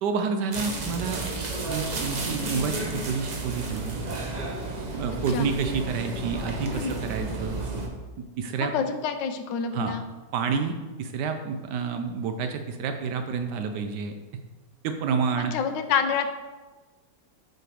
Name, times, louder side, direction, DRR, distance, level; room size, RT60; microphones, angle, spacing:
voice 1, 0.0-1.2 1.6-4.0 4.9-7.6 8.2-8.7 9.7-9.9 10.3-14.1 14.8-15.5, right 5 dB, 75° right, 6 dB, 1.1 m, -29 dB
sound 1, 0.5-7.9, right 2 dB, 55° right, 0.4 m, -32 dB
voice 2, 8.6-10.0 15.5-16.3, left 6 dB, 80° left, 8 dB, 1.3 m, -27 dB
6.5 x 4.5 x 4.8 m, 1.3 s
omnidirectional pair, 2.0 m